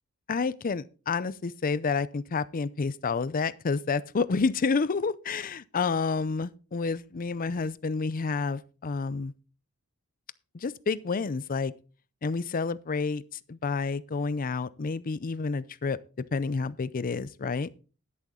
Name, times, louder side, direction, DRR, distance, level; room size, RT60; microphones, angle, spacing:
voice 1, 0.3-9.3 10.5-11.7 12.2-13.2 13.5-16.0 16.3-17.7, left 4 dB, 40° left, 0.5 m, -29 dB
11.0 x 10.5 x 3.8 m
head